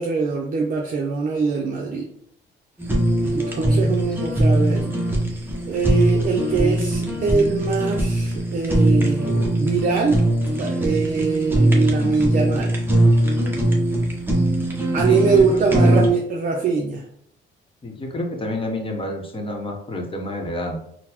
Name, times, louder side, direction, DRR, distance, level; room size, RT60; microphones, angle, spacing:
voice 1, 0.0-2.1 3.2-4.9 5.7-10.2 10.6-12.7 14.9-17.0, right 4 dB, 45° right, 1 dB, 0.5 m, -22 dB
Fire, 2.8-16.1, right 1 dB, 10° right, 0.8 m, -21 dB
voice 2, 15.0-16.1 17.8-20.8, left 1 dB, 25° left, 1 dB, 0.9 m, -29 dB
3.7 x 2.1 x 2.9 m, 0.67 s
cardioid pair, 90°, 20 cm